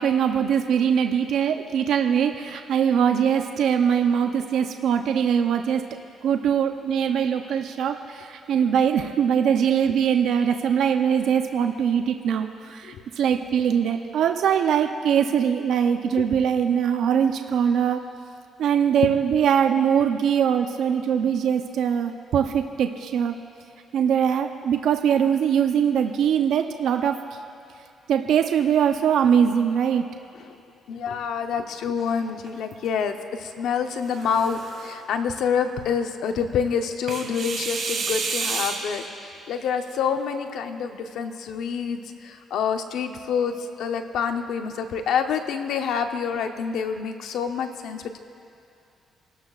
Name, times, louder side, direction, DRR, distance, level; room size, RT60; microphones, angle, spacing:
voice 1, 0.0-5.9 6.2-18.0 18.6-23.3 23.9-27.2 28.1-30.0, right 8 dB, 75° right, 6 dB, 0.6 m, -22 dB
voice 2, 30.9-48.2, left 6 dB, 80° left, 7 dB, 0.8 m, -27 dB
sound 1, 32.0-32.9 33.9-35.0 37.1-39.1, right 4 dB, 50° right, 2.4 m, -31 dB
29.0 x 12.5 x 2.4 m, 2.5 s
cardioid pair, 90°, 0 cm